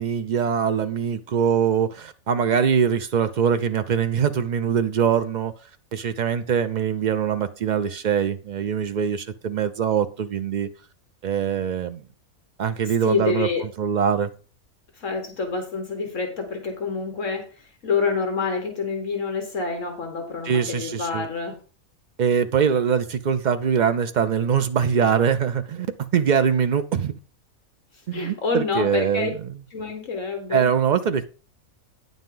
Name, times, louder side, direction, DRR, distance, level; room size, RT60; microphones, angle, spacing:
voice 1, 0.0-5.5 5.9-10.7 11.2-12.0 12.6-14.3 20.4-21.3 22.2-25.9 26.1-27.1 28.1-29.3 30.5-31.2, right 7 dB, 75° right, 0.4 m, -23 dB
voice 2, 13.0-13.6 15.0-21.6 28.1-29.3 29.7-30.7, left 4 dB, 60° left, 1.6 m, -27 dB
9.3 x 7.2 x 3.8 m
omnidirectional pair, 1.5 m